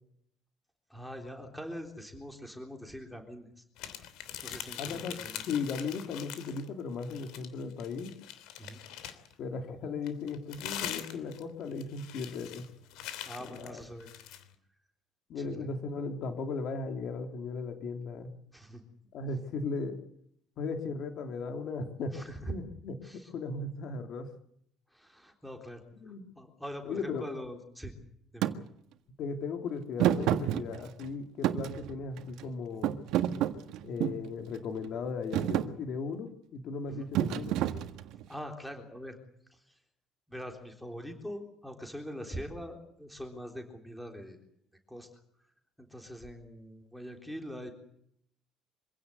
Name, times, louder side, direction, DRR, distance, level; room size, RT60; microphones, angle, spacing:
voice 1, 0.9-3.6 4.4-5.4 8.6-8.8 13.2-14.1 15.4-15.7 18.5-18.8 22.1-22.5 23.0-23.3 24.9-27.9 28.3-28.4 36.9-37.1 38.3-39.2 39.5-39.8 40.3-44.4 44.9-45.1 45.8-47.7, equal, ahead, 3 dB, 3.6 m, -43 dB
sound 1, 3.8-6.7 7.0-9.3 10.0-14.4, left 11 dB, 75° left, 3.1 m, -43 dB
voice 2, 4.8-5.2 5.5-8.1 9.4-12.7 13.4-13.8 15.3-18.4 19.1-20.0 20.6-22.9 23.3-24.3 26.0-26.2 26.9-27.3 29.2-33.0 33.8-37.5, left 4 dB, 45° left, 6 dB, 2.7 m, -37 dB
Thump thud, 28.4-28.6 30.0-31.1 31.4-32.4 32.8-34.3 34.8-35.1 35.3-35.7 37.1-38.2, right 11 dB, 65° right, 1.6 m, -29 dB
25.5 x 16.5 x 8.1 m, 0.70 s
cardioid pair, 175°, 0 cm